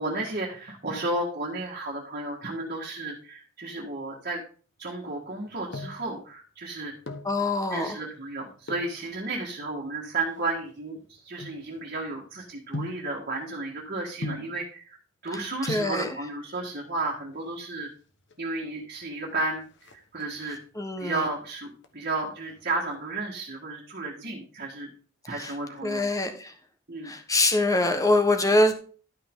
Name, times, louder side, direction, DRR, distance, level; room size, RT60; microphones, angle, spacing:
voice 1, 0.0-4.4 4.8-6.9 7.7-15.0 15.2-17.9 18.4-19.7 19.9-20.6 21.0-24.9 25.3-26.1 26.9-27.1, right 2 dB, 45° right, -3 dB, 1.8 m, -33 dB
sound 1, 5.3-6.1 6.8-7.4 8.6-9.0 9.7-12.1 12.7-13.1 14.2-14.6 15.4-15.5 15.7-16.0 17.1-17.7 18.0-18.1 18.3-18.4 18.8-19.2 19.5-20.6 21.0-21.4 21.8-22.9 23.2-23.3, left 2 dB, 60° left, 1.3 m, -39 dB
voice 2, 7.2-7.9 15.3-15.4 15.7-16.1 20.7-21.3 25.4-25.5 25.8-26.5 27.0-28.7, left 2 dB, 15° left, 6 dB, 1.2 m, -24 dB
12.5 x 5.7 x 3.8 m, 0.41 s
head